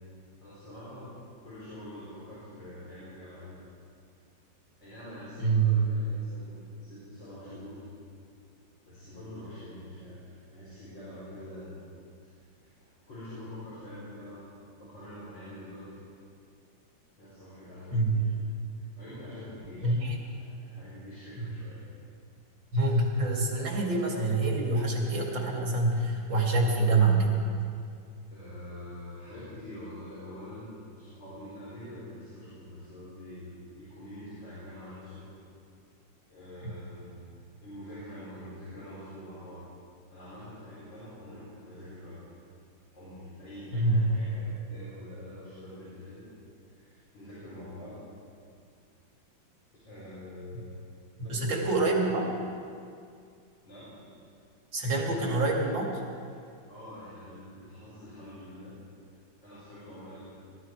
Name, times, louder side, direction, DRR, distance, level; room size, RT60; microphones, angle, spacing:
voice 1, 0.4-1.1 1.4-3.6 4.8-7.8 8.8-11.8 12.2-12.4 12.7-14.4 14.8-16.0 17.2-18.3 18.8-21.8 28.3-30.7 31.0-35.3 36.3-37.1 37.6-39.6 40.1-42.2 42.9-46.3 46.7-48.0 49.9-50.7 51.2-52.0 53.6-54.0 56.7-58.7 59.4-60.2, left 1 dB, 80° left, -11 dB, 5.7 m, -45 dB
voice 2, 5.4-5.7 17.9-18.2 19.8-20.2 22.7-27.3 36.6-36.7 43.7-44.0 51.3-52.3 54.7-56.0, right 3 dB, 90° right, -1 dB, 3.0 m, -26 dB
21.5 x 12.5 x 4.7 m, 2.3 s
omnidirectional pair, 2.0 m